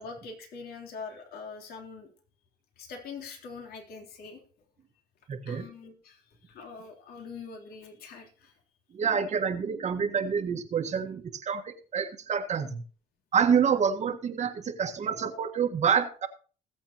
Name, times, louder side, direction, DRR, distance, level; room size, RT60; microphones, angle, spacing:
voice 1, 0.0-2.1 2.8-4.4 5.5-8.5, left 4 dB, 65° left, 2 dB, 3.6 m, -43 dB
voice 2, 5.3-5.7 8.9-12.8 13.3-16.3, right 7 dB, 45° right, 5 dB, 1.6 m, -27 dB
20.0 x 7.8 x 3.0 m, 0.38 s
cardioid pair, 110°, 17 cm